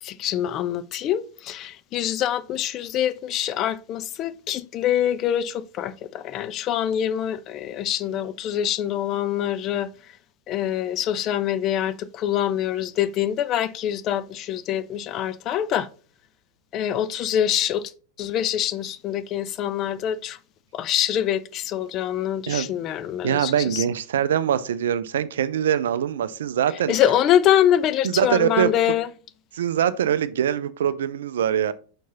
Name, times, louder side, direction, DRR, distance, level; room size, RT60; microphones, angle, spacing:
voice 1, 0.0-9.9 10.5-15.9 16.7-17.9 18.2-20.4 20.7-23.8 26.9-29.1, left 10 dB, 35° left, 0.4 m, -25 dB
voice 2, 23.2-26.9 28.0-28.7 29.5-31.7, right 9 dB, 60° right, 0.4 m, -23 dB
5.5 x 4.5 x 4.0 m
figure-of-eight pair, 90°, 0 cm